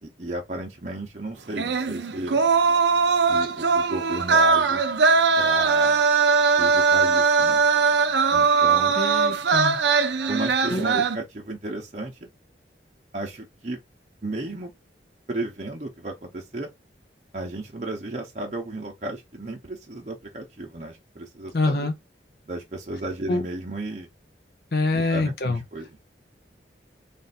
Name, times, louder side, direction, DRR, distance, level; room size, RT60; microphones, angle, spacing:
voice 1, 0.0-2.4 3.1-4.8 5.4-6.0 6.6-7.6 8.3-8.9 10.3-12.3 13.1-13.8 14.2-14.7 15.3-16.7 17.3-21.9 22.5-24.1 24.9-25.9, right 2 dB, 40° right, 0.8 m, -34 dB
sound 1, 1.6-11.2, right 5 dB, 75° right, 0.6 m, -20 dB
voice 2, 8.9-9.8 10.7-11.0 21.5-21.9 23.3-23.4 24.7-25.6, left 2 dB, 55° left, 0.7 m, -25 dB
3.4 x 2.6 x 4.1 m
head